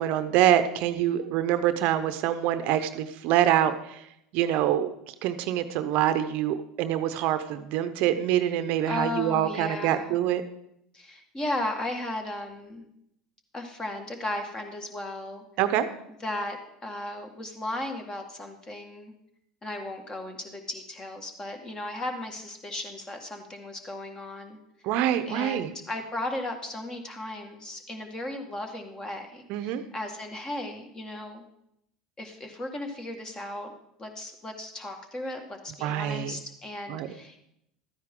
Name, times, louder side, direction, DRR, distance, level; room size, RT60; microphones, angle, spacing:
voice 1, 0.0-4.0 4.3-10.4 15.6-15.9 24.8-25.7 29.5-29.8 35.8-36.4 36.9-37.1, right 11 dB, 60° right, 11 dB, 0.7 m, -25 dB
voice 2, 8.9-10.2 10.9-12.9 13.5-15.4 16.2-16.6 16.8-19.1 19.6-24.6 25.3-31.4 32.2-33.7 34.0-37.4, left 1 dB, 25° left, 4 dB, 1.9 m, -35 dB
13.0 x 9.5 x 3.8 m, 0.78 s
hypercardioid pair, 90°, 3 cm